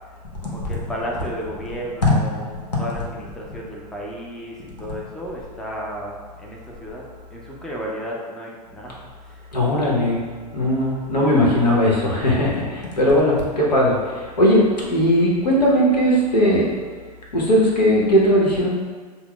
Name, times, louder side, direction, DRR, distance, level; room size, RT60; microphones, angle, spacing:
voice 1, 0.1-2.5 2.8-7.0 7.3-8.9 9.2-9.5, equal, 5° left, -3 dB, 0.4 m, -33 dB
voice 2, 9.5-10.2 10.5-16.7 17.3-18.7, equal, 85° left, -3 dB, 0.9 m, -18 dB
5.6 x 2.1 x 2.2 m, 1.5 s
figure-of-eight pair, 100°, 21 cm